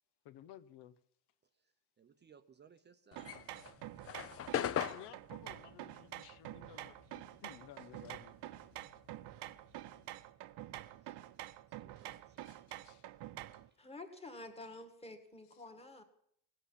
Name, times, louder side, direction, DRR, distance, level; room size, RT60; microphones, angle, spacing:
voice 1, 0.2-1.0 4.9-8.3 12.0-13.1, left 11 dB, 75° left, 1.0 m, -56 dB
voice 2, 1.5-3.3 8.2-8.3 11.0-11.2 11.7-12.5 13.7-13.8, right 6 dB, 25° right, 0.6 m, -64 dB
sound 1, 3.1-7.8 8.1-10.1, left 9 dB, 35° left, 0.6 m, -40 dB
sound 2, 3.2-13.7, right 14 dB, 75° right, 0.9 m, -48 dB
voice 3, 13.8-16.0, left 2 dB, 15° left, 1.8 m, -49 dB
18.0 x 8.1 x 9.8 m
cardioid pair, 170°, 41 cm